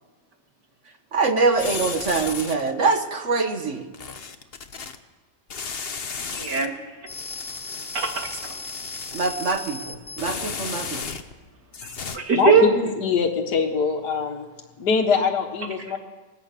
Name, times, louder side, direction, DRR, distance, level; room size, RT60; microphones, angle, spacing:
voice 1, 1.1-3.9 9.1-11.0, right 4 dB, 45° right, 7 dB, 1.6 m, -24 dB
sound 1, 1.6-2.7 3.9-4.9 5.5-6.7 7.1-11.4 11.7-12.2, left 5 dB, 40° left, 1.1 m, -34 dB
voice 2, 6.3-6.7 7.9-8.4 11.8-12.7 15.9-16.0, right 6 dB, 65° right, 2 dB, 3.2 m, -21 dB
voice 3, 12.3-14.5 14.8-16.0, left 5 dB, 60° left, 2 dB, 2.1 m, -23 dB
24.5 x 18.5 x 6.8 m, 1.3 s
omnidirectional pair, 2.0 m